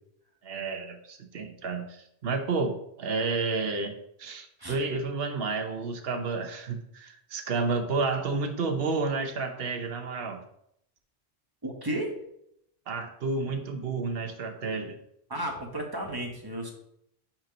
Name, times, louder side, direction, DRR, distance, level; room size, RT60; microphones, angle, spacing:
voice 1, 0.4-10.4 12.9-15.0, right 4 dB, 65° right, 5 dB, 1.1 m, -31 dB
voice 2, 11.6-12.2 15.3-16.7, right 1 dB, 20° right, 0 dB, 1.2 m, -33 dB
5.8 x 4.4 x 5.2 m, 0.73 s
omnidirectional pair, 1.1 m